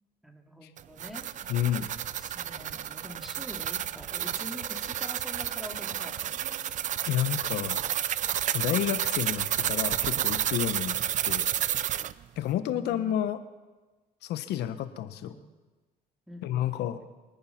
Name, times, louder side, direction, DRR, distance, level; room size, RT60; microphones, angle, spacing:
voice 1, 0.2-1.3 2.2-6.6 12.5-13.1 15.1-15.5 16.3-17.0, equal, ahead, 3 dB, 2.3 m, -45 dB
sound 1, 0.8-12.1, right 11 dB, 45° right, 0.5 m, -31 dB
voice 2, 1.5-1.9 7.1-7.8 8.5-11.0 11.2-11.5 12.4-13.4 14.2-15.3 16.4-17.0, left 11 dB, 80° left, 11 dB, 1.1 m, -30 dB
24.0 x 9.6 x 5.8 m, 1.2 s
cardioid pair, 110°, 17 cm